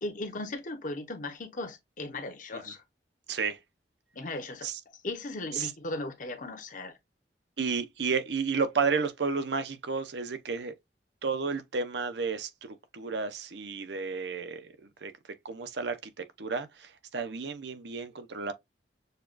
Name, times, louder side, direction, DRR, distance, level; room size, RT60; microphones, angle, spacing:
voice 1, 0.0-2.8 4.1-6.9, left 2 dB, 45° left, 0.9 m, -37 dB
voice 2, 3.3-3.6 4.6-4.8 5.5-5.7 7.6-10.7 11.2-15.1 15.4-18.5, right 5 dB, 75° right, 0.7 m, -32 dB
6.6 x 2.3 x 2.4 m
head